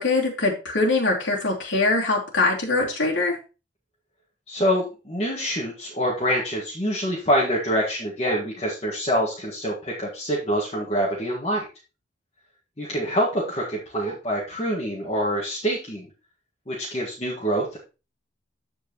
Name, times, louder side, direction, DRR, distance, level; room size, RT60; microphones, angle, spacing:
voice 1, 0.0-3.4, left 3 dB, 85° left, -2 dB, 2.9 m, -22 dB
voice 2, 4.5-11.6 12.8-16.1 16.7-17.8, equal, 35° left, -6 dB, 1.8 m, -25 dB
14.0 x 4.7 x 3.1 m, 0.31 s
head